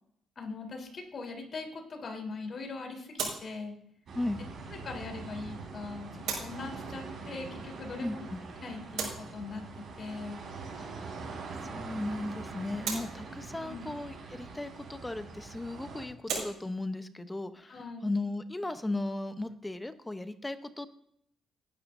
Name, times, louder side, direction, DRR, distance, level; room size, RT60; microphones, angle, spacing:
voice 1, 0.4-3.7 4.8-6.1 6.4-8.2 8.6-10.4 13.3-13.4 13.6-13.9 17.7-18.1, left 3 dB, 45° left, 2 dB, 3.6 m, -41 dB
sound 1, 0.7-20.0, right 5 dB, 80° right, 5.4 m, -44 dB
sound 2, 4.1-16.0, right 4 dB, 60° right, 4.3 m, -43 dB
voice 2, 8.0-8.4 10.8-10.9 11.7-20.9, left 2 dB, 15° left, 10 dB, 0.8 m, -36 dB
17.5 x 10.5 x 2.7 m, 0.70 s
cardioid pair, 90°, 0 cm